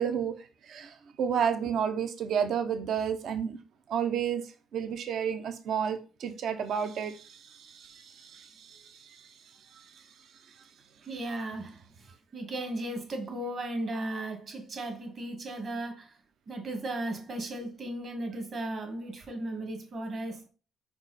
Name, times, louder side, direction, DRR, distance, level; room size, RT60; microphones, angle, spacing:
voice 1, 0.0-3.6 3.9-4.4 4.7-9.3 9.7-9.9, right 7 dB, 65° right, 0.7 m, -31 dB
voice 2, 11.1-11.8 12.3-16.1 16.5-20.5, right 1 dB, 45° right, 1.8 m, -36 dB
4.8 x 4.7 x 4.1 m
cardioid pair, 105°, 0 cm